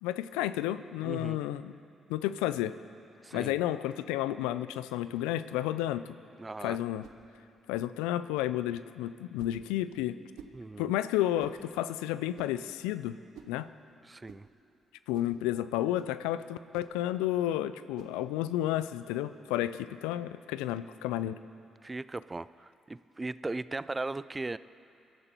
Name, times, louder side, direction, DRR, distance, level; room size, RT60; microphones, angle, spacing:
voice 1, 0.0-1.7 2.1-2.8 3.3-6.1 6.6-7.1 7.7-10.2 10.8-13.2 13.5-13.7 15.1-21.4, left 13 dB, 90° left, 14 dB, 0.4 m, -31 dB
voice 2, 1.0-1.4 3.2-3.6 6.4-6.8 10.5-10.9 14.1-14.5 21.8-24.6, right 2 dB, 25° right, 16 dB, 0.4 m, -38 dB
sound 1, 7.0-7.2 8.3-8.6 9.4-9.6 10.3-10.6 11.4-11.6 12.3-12.6 13.3-13.6 14.2-14.4 15.1-15.4 15.9-16.2 16.7-17.0 17.9-18.2 18.8-19.0, right 8 dB, 80° right, 1.0 m, -52 dB
22.5 x 12.5 x 4.5 m, 2.6 s
supercardioid pair, 55°, 0 cm